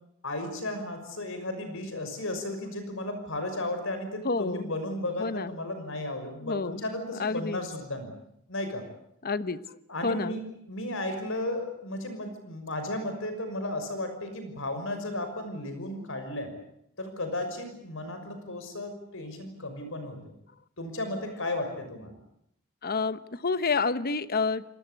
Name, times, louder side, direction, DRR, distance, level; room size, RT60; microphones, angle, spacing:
voice 1, 0.2-8.1 8.5-8.8 9.9-16.5 17.0-20.2 20.8-22.1, left 1 dB, 65° left, 8 dB, 6.1 m, -34 dB
voice 2, 4.2-4.7 5.2-5.5 6.4-6.8 7.2-7.6 9.2-9.8 10.0-10.4 22.8-24.6, left 4 dB, 45° left, 14 dB, 1.1 m, -29 dB
28.0 x 19.5 x 8.4 m, 0.75 s
head